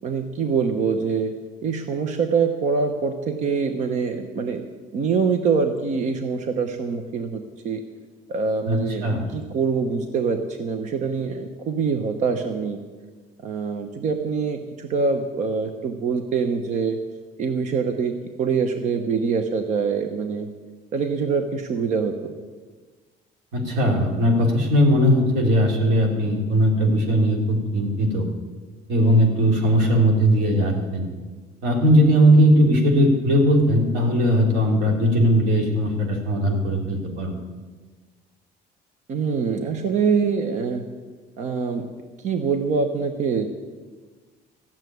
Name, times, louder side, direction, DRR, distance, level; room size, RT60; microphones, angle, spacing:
voice 1, 0.0-1.3 1.6-4.6 4.9-7.8 8.3-12.8 13.4-17.0 17.4-20.5 20.9-22.3 39.1-40.8 41.4-41.9 42.2-43.5, right 5 dB, 45° right, 7 dB, 0.9 m, -24 dB
voice 2, 8.7-9.2 23.5-28.2 28.9-31.1 31.6-37.3, equal, 90° right, 1 dB, 3.3 m, -19 dB
14.5 x 7.3 x 9.4 m, 1.4 s
cardioid pair, 165°, 18 cm